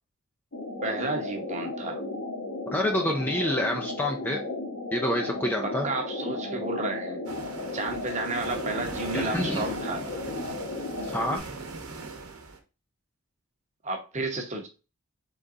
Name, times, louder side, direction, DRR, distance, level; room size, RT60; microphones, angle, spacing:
sound 1, 0.5-11.4, left 2 dB, 70° left, 1.3 m, -35 dB
voice 1, 0.8-2.0 5.6-7.2 7.7-10.0 13.8-14.7, right 2 dB, 30° right, 3 dB, 0.9 m, -32 dB
voice 2, 2.7-4.4 4.9-5.9 9.1-9.7 11.1-11.4, left 1 dB, 10° left, 1 dB, 0.4 m, -27 dB
sound 2, 7.2-12.6, right 3 dB, 85° right, 0.9 m, -40 dB
3.9 x 3.5 x 3.6 m, 0.31 s
head